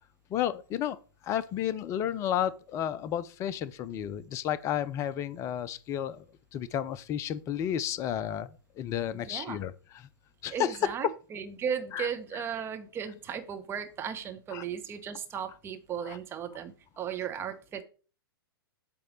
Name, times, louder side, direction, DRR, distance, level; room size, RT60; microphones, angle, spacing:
voice 1, 0.3-1.0 1.2-6.2 6.5-10.1 10.4-10.9 11.9-12.1 12.3-12.4 14.5-14.6 16.0-16.2, left 10 dB, 25° left, 0.5 m, -32 dB
voice 2, 9.1-9.6 10.5-17.8, right 8 dB, 20° right, 1.0 m, -36 dB
8.5 x 3.2 x 6.1 m
figure-of-eight pair, 110°, 12 cm